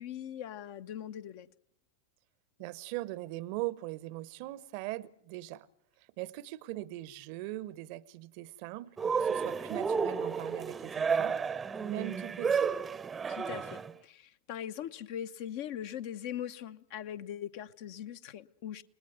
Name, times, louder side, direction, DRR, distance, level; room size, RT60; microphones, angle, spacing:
voice 1, 0.0-1.5 13.3-18.8, left 10 dB, 50° left, 0.9 m, -41 dB
voice 2, 2.6-5.7 6.2-11.4 11.8-12.7, right 17 dB, 45° right, 0.8 m, -40 dB
Cheering, 9.0-13.9, right 6 dB, 15° right, 0.8 m, -32 dB
29.5 x 19.5 x 6.1 m
figure-of-eight pair, 90°, 0 cm